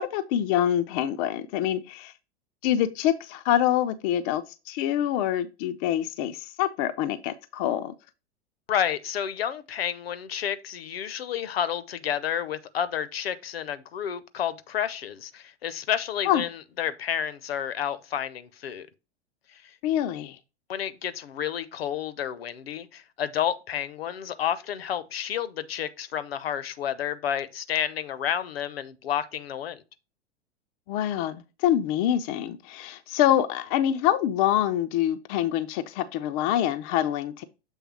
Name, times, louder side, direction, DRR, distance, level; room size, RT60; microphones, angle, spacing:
voice 1, 0.0-2.1 2.6-7.9 16.3-16.4 19.8-20.4 30.9-37.4, left 11 dB, 30° left, 0.5 m, -25 dB
voice 2, 8.7-18.9 19.5-19.6 20.7-29.8, left 9 dB, 60° left, 0.7 m, -30 dB
7.3 x 3.4 x 4.5 m
figure-of-eight pair, 95°, 34 cm